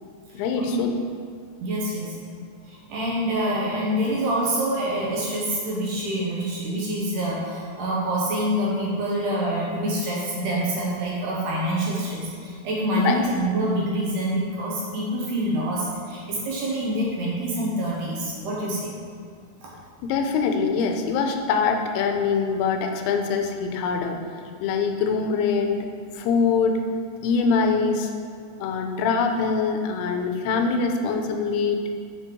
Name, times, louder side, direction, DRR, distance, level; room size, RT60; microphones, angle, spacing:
voice 1, 0.3-0.9 13.0-13.2 20.0-24.2 24.6-25.9 26.1-26.8 27.2-28.1 28.6-31.8, left 5 dB, 85° left, 4 dB, 2.7 m, -23 dB
voice 2, 1.6-2.2 2.7-18.9 19.6-19.7, right 1 dB, 70° right, -4 dB, 2.2 m, -26 dB
6.9 x 5.6 x 4.5 m, 2.2 s
omnidirectional pair, 4.6 m